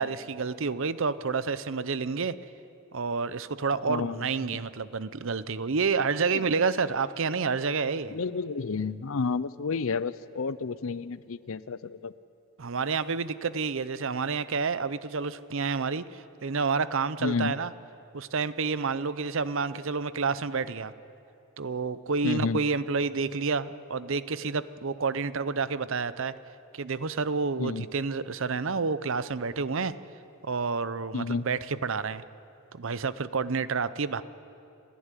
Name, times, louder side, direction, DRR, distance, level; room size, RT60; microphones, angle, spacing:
voice 1, 0.0-2.4 2.9-8.2 12.6-17.7 18.1-20.9 21.6-26.3 26.7-29.9 30.4-32.2 32.7-34.2, right 4 dB, 65° right, 15 dB, 0.7 m, -29 dB
voice 2, 8.1-12.1 17.2-17.5 22.2-22.6 27.6-27.8 31.1-31.4, left 4 dB, 70° left, 17 dB, 0.6 m, -30 dB
29.5 x 11.5 x 9.9 m, 2.6 s
head